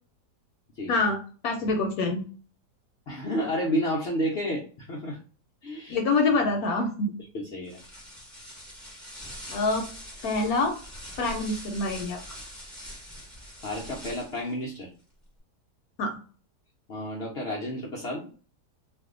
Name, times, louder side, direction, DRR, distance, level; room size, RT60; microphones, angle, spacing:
voice 1, 0.9-1.2 1.4-2.2 5.9-7.1 9.5-9.9 10.2-10.7 11.2-12.2 16.0-16.2, left 3 dB, 70° left, 3 dB, 0.9 m, -25 dB
voice 2, 3.1-5.2 5.6-6.0 7.3-7.8 13.6-14.9 16.9-18.3, equal, 90° left, -2 dB, 0.5 m, -31 dB
sound 1, 7.6-14.5, equal, ahead, 0.9 m, -43 dB
2.6 x 2.4 x 3.6 m, 0.40 s
omnidirectional pair, 1.8 m